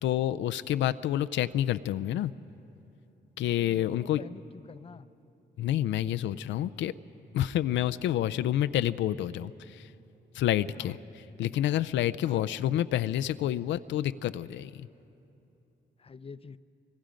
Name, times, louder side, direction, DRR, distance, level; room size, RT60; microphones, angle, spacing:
voice 1, 0.0-2.3 3.4-4.2 5.6-6.9 7.3-9.9 10.3-14.9, left 12 dB, 90° left, 12 dB, 0.4 m, -28 dB
voice 2, 3.4-5.1 10.7-11.0 12.2-12.4 16.0-16.6, left 5 dB, 30° left, 14 dB, 0.6 m, -47 dB
23.5 x 23.5 x 5.1 m, 2.9 s
cardioid pair, 75°, 19 cm